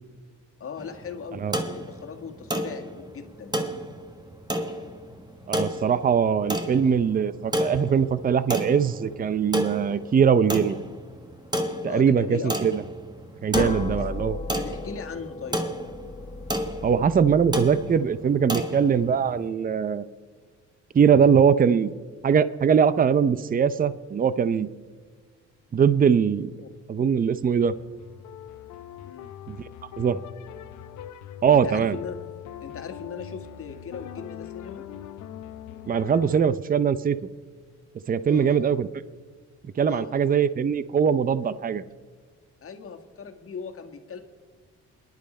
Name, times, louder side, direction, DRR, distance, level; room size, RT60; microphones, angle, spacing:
voice 1, 0.6-3.6 11.9-12.6 13.6-14.1 14.5-15.6 26.6-26.7 29.0-29.3 31.5-32.2 32.6-34.8 38.3-38.7 39.9-40.2 42.6-44.2, left 6 dB, 45° left, 5 dB, 1.8 m, -38 dB
sound 1, 0.8-19.5, right 1 dB, 15° right, 1.4 m, -32 dB
voice 2, 5.5-10.8 11.8-12.8 13.4-14.4 16.8-20.0 20.9-21.9 22.2-24.7 25.7-26.5 26.9-27.7 29.5-29.6 30.0-30.2 31.4-32.0 35.9-37.2 38.1-38.9 39.8-41.8, right 7 dB, 30° right, 15 dB, 0.6 m, -21 dB
sound 2, 13.5-18.2, left 3 dB, 25° left, 1.1 m, -35 dB
sound 3, 27.4-36.5, left 10 dB, 75° left, 0.8 m, -42 dB
28.0 x 11.0 x 4.3 m, 1.5 s
cardioid pair, 90°, 30 cm